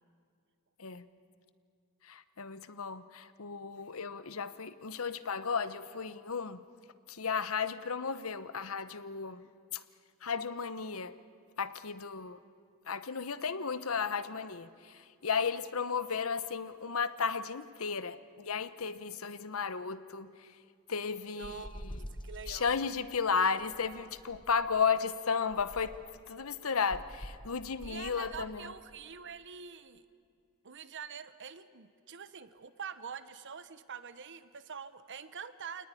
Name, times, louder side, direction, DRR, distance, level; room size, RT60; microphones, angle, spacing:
voice 1, 2.1-6.6 7.1-9.4 9.7-9.8 10.2-11.1 11.6-12.4 12.9-14.9 15.2-20.3 20.9-21.5 22.5-25.9 26.3-28.7, left 5 dB, 75° left, 14 dB, 1.0 m, -34 dB
sound 1, 21.4-22.7 23.6-24.8 25.5-26.2 26.9-28.5, equal, 20° left, 1.1 m, -46 dB
voice 2, 21.4-22.8 27.8-30.0 30.6-35.9, right 6 dB, 60° right, 13 dB, 1.0 m, -45 dB
27.5 x 19.0 x 9.8 m, 2.3 s
head